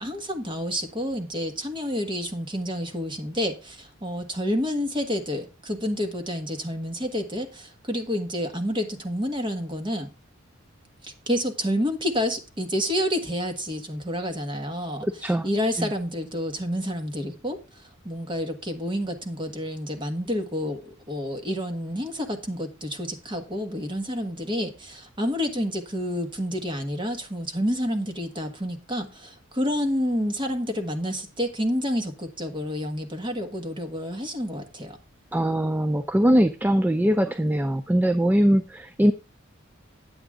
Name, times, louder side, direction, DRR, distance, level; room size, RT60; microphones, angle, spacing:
voice 1, 0.0-10.1 11.0-35.0, equal, 25° right, 1.4 m, -29 dB
voice 2, 15.0-15.5 15.8-15.9 35.3-39.1, equal, 10° right, 0.4 m, -21 dB
9.2 x 7.9 x 3.7 m
head